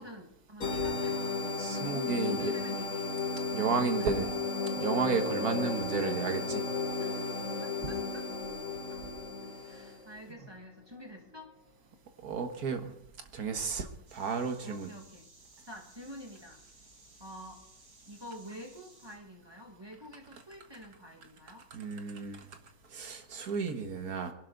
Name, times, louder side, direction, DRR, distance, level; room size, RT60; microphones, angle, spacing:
voice 1, 0.0-1.4 1.9-4.1 7.0-7.2 7.6-8.3 8.9-9.0 9.7-11.5 14.6-15.3 15.6-16.6 17.2-17.6 18.0-21.7, equal, 15° right, 1 dB, 1.7 m, -48 dB
sound 1, 0.6-10.0, left 4 dB, 50° left, 2.2 m, -34 dB
voice 2, 1.6-2.5 3.5-4.3 4.8-6.6 12.2-12.9 13.3-14.9 21.7-22.5 22.9-24.3, right 5 dB, 55° right, 6 dB, 1.8 m, -32 dB
sound 2, 3.9-10.6 11.2-11.4, left 4 dB, 85° left, 2.0 m, -42 dB
sound 3, 14.1-19.2, right 2 dB, 90° right, 3.8 m, -59 dB
22.0 x 11.5 x 3.9 m, 0.81 s
omnidirectional pair, 1.9 m